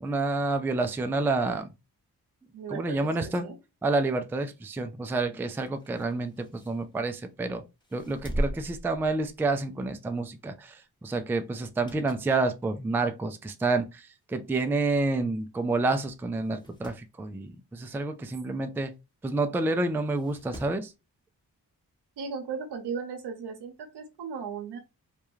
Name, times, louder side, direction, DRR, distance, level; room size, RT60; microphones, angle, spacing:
voice 1, 0.0-1.7 2.7-3.5 3.8-7.6 7.9-18.9 19.2-20.9, right 3 dB, 5° right, 0.3 m, -29 dB
voice 2, 2.5-3.6 22.2-24.8, right 6 dB, 80° right, 0.7 m, -37 dB
sound 1, 5.5-7.3 7.8-9.7 10.1-10.3 11.6-12.4 12.8-12.9 13.8-13.9 14.2-14.3 14.4-14.5 15.4-15.6 15.9-16.0 16.4-17.1 18.9-19.0 20.0-20.9 22.2-22.3, equal, 10° left, 0.8 m, -38 dB
2.4 x 2.2 x 3.1 m
supercardioid pair, 45°, 40 cm